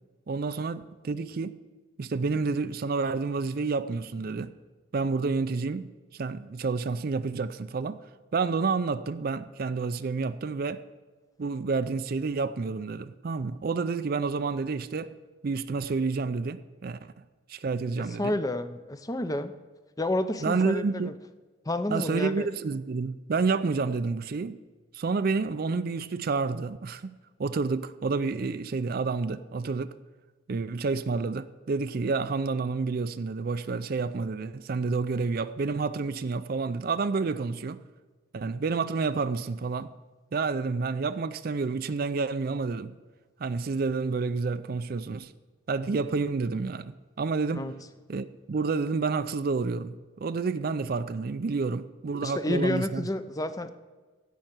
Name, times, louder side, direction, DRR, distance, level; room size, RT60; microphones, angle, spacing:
voice 1, 0.3-1.6 2.0-4.5 4.9-8.0 8.3-10.8 11.4-15.1 15.4-17.1 17.5-18.3 20.4-21.1 21.9-24.6 24.9-29.9 30.5-37.8 38.3-39.9 40.3-43.0 43.4-45.3 45.7-47.7 48.1-53.1, right 4 dB, 45° right, 0.4 m, -29 dB
voice 2, 18.2-19.5 20.0-21.1 21.7-22.5 47.5-47.7 52.2-53.7, left 1 dB, 20° left, 0.5 m, -30 dB
16.0 x 5.7 x 8.0 m
head